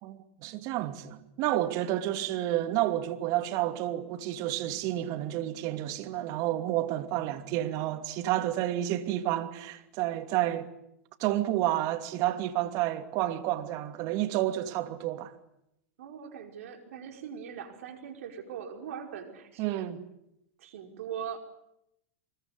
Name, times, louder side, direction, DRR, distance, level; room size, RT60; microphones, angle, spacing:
voice 1, 0.0-10.7 11.2-15.3 19.6-20.0, right 14 dB, 50° right, 2.7 m, -30 dB
voice 2, 16.0-19.8 20.6-21.4, right 8 dB, 70° right, 5.3 m, -41 dB
24.5 x 22.0 x 9.8 m
hypercardioid pair, 105°, 8 cm